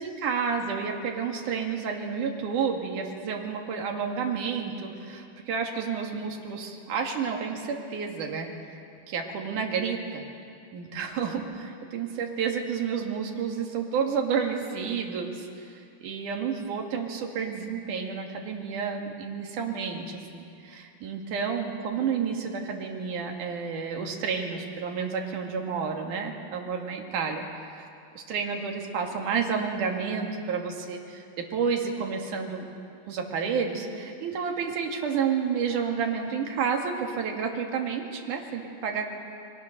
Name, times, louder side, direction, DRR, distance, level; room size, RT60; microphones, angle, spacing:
voice 1, 0.0-8.8 9.1-10.2 10.7-27.4 27.7-27.9 28.1-32.6 33.1-39.1, right 6 dB, 55° right, 2 dB, 3.3 m, -30 dB
28.0 x 22.5 x 6.6 m, 2.5 s
omnidirectional pair, 4.7 m